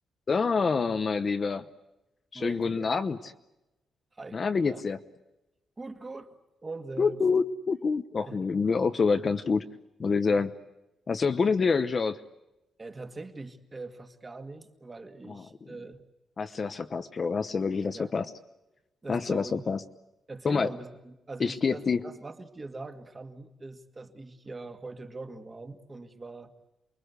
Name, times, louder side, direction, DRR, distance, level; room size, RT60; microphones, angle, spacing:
voice 1, 0.3-1.6 2.3-3.2 4.3-5.0 7.0-9.6 10.0-10.5 11.1-12.2 15.3-15.4 16.4-18.3 19.1-19.8 20.4-20.7 21.4-22.0, left 5 dB, 30° left, 9 dB, 0.9 m, -27 dB
voice 2, 2.3-2.9 4.1-4.8 5.8-6.3 6.6-7.2 8.3-8.5 10.2-10.4 12.8-16.0 17.9-18.1 19.0-19.6 20.3-26.5, right 3 dB, 20° right, 7 dB, 1.9 m, -42 dB
29.0 x 22.5 x 8.2 m, 0.97 s
wide cardioid pair, 180°, 0 cm